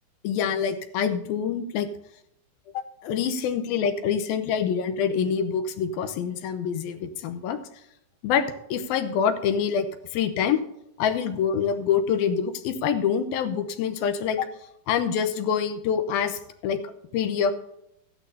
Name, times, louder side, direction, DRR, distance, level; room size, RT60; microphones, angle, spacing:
voice 1, 0.2-1.9 2.7-7.6 8.2-9.9 10.1-10.6 11.0-14.5 14.9-16.8 17.1-17.5, left 7 dB, 75° left, 9 dB, 2.5 m, -26 dB
15.5 x 10.5 x 2.7 m, 0.78 s
omnidirectional pair, 4.7 m